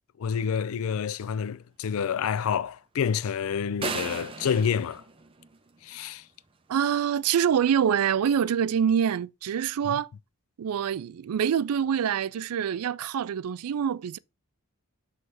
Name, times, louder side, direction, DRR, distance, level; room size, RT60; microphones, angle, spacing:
voice 1, 0.2-5.0 5.8-6.2 9.8-10.0, left 7 dB, 70° left, 0.4 m, -28 dB
sound 1, 3.8-6.0, right 4 dB, 25° right, 0.5 m, -36 dB
voice 2, 6.7-10.1 10.6-14.2, right 8 dB, 85° right, 0.3 m, -25 dB
6.3 x 3.2 x 5.4 m
head